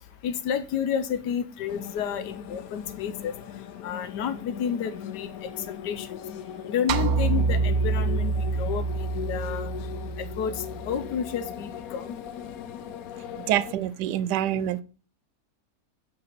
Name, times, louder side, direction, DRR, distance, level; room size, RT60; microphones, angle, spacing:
voice 1, 0.2-3.3 3.8-5.3 5.8-6.2 6.7-9.7 10.4-12.1, left 8 dB, 90° left, 1.4 m, -30 dB
sound 1, 1.7-13.7, left 9 dB, 65° left, 1.1 m, -39 dB
sound 2, 6.9-11.3, right 4 dB, 65° right, 0.7 m, -27 dB
voice 2, 13.5-14.8, right 11 dB, 80° right, 1.2 m, -26 dB
7.6 x 5.8 x 6.0 m
omnidirectional pair, 1.8 m